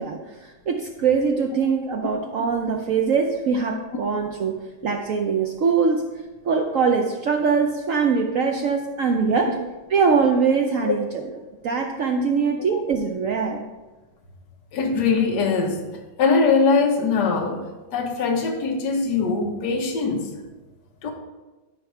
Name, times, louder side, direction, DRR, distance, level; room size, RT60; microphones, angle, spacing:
voice 1, 0.0-6.1 6.4-9.6 9.9-11.1 11.6-13.7, right 5 dB, 75° right, 2 dB, 0.7 m, -22 dB
voice 2, 14.7-15.8 16.2-17.7 17.9-20.3 21.0-21.1, left 4 dB, 60° left, 1 dB, 1.6 m, -21 dB
12.5 x 5.1 x 3.3 m, 1.2 s
omnidirectional pair, 2.1 m